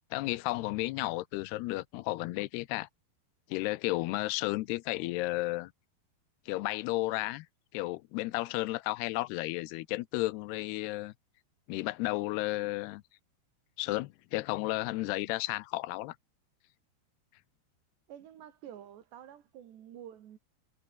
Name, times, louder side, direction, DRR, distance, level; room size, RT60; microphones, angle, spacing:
voice 1, 0.1-2.9 3.5-5.7 6.5-7.5 7.7-11.1 11.7-13.0 13.8-16.2, left 19 dB, 85° left, 2.7 m, -33 dB
voice 2, 18.1-20.4, right 10 dB, 85° right, 4.5 m, -49 dB
omnidirectional pair, 4.8 m